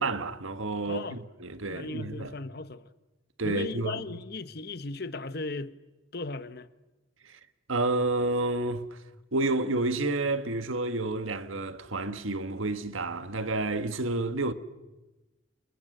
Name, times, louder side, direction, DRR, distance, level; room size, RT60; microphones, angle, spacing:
voice 1, 0.0-2.3 3.4-4.0 7.2-7.4 7.7-9.0 9.3-14.5, right 2 dB, 75° right, 1.6 m, -30 dB
voice 2, 0.9-1.2 1.7-2.9 3.4-5.7 6.1-6.7, left 3 dB, 50° left, 1.2 m, -37 dB
30.0 x 29.0 x 6.8 m
head